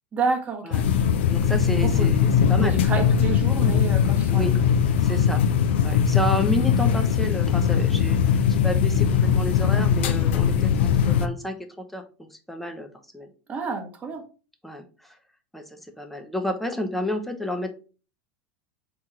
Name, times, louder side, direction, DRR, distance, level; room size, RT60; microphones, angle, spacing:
voice 1, 0.1-0.6 1.8-2.1 2.6-4.5 13.5-14.3, right 4 dB, 25° right, 4 dB, 1.1 m, -29 dB
sound 1, 0.7-11.3, left 8 dB, 85° left, 0.5 m, -20 dB
voice 2, 1.3-2.8 4.3-4.5 5.0-5.4 5.8-11.6 11.9-12.0 12.5-12.9 13.1-13.3 14.6-15.2 15.5-15.6 16.0-17.7, equal, ahead, 4 dB, 0.7 m, -30 dB
4.4 x 3.0 x 3.7 m, 0.36 s
supercardioid pair, 135°, 6 cm